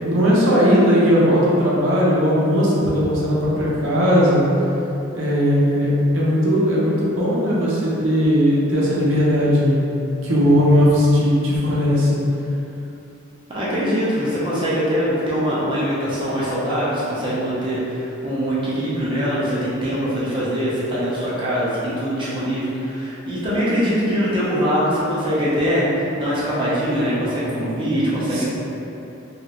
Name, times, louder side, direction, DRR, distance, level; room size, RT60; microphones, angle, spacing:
voice 1, 0.0-4.5 5.1-9.9 10.2-12.2 28.3-28.4, equal, 75° right, -7 dB, 0.7 m, -18 dB
voice 2, 13.5-28.4, equal, 25° right, -9 dB, 0.6 m, -22 dB
3.0 x 2.4 x 2.8 m, 2.8 s
head